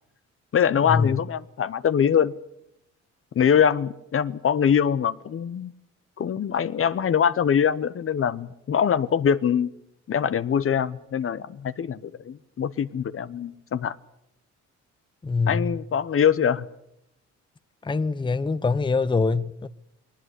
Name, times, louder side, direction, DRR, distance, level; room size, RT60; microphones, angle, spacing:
voice 1, 0.5-2.3 3.3-5.7 6.2-9.7 10.1-14.0 15.5-16.7, left 8 dB, 45° left, 0.9 m, -23 dB
voice 2, 15.2-15.8 17.8-19.7, left 4 dB, 15° left, 0.7 m, -24 dB
20.0 x 19.0 x 8.2 m
cardioid pair, 90°, 30 cm